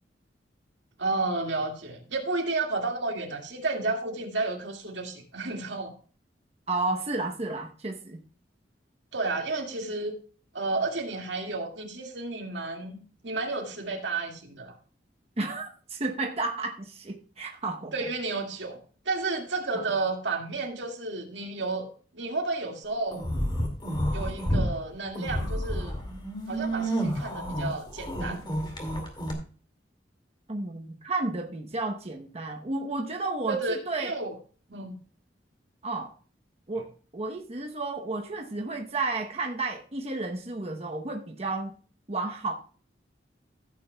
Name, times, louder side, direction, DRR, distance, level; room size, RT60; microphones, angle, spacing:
voice 1, 1.0-5.9 9.1-10.1 10.5-14.8 17.9-18.8 19.1-21.9 22.1-23.2 24.1-26.0 26.5-28.5 33.5-34.3 34.7-34.9, right 3 dB, 90° right, 2 dB, 2.1 m, -31 dB
voice 2, 6.7-8.2 15.4-18.1 19.7-19.8 30.5-34.1 35.8-36.2 36.7-41.7 42.1-42.5, right 3 dB, 35° right, 2 dB, 0.9 m, -32 dB
sound 1, 23.1-24.7 25.1-29.3, equal, 25° left, 2.3 m, -30 dB
15.0 x 8.5 x 2.3 m, 0.38 s
head